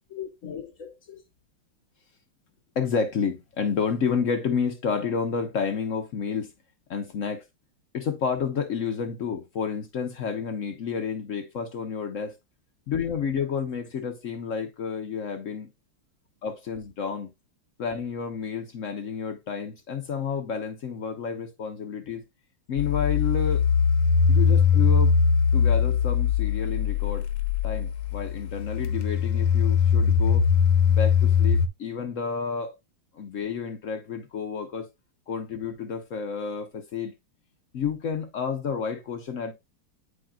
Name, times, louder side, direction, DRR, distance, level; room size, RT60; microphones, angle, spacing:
voice 1, 0.1-1.2 2.8-6.5 6.9-7.4 7.9-12.3 12.9-15.7 16.4-17.3 17.8-22.2 22.7-23.7 24.3-25.1 25.5-27.3 27.6-30.5 30.9-32.7 33.1-34.9 35.3-37.1 37.7-39.5, left 6 dB, 70° left, 0.7 m, -30 dB
sound 1, 22.8-31.7, left 6 dB, 90° left, 1.5 m, -21 dB
8.7 x 5.0 x 2.3 m
omnidirectional pair, 2.3 m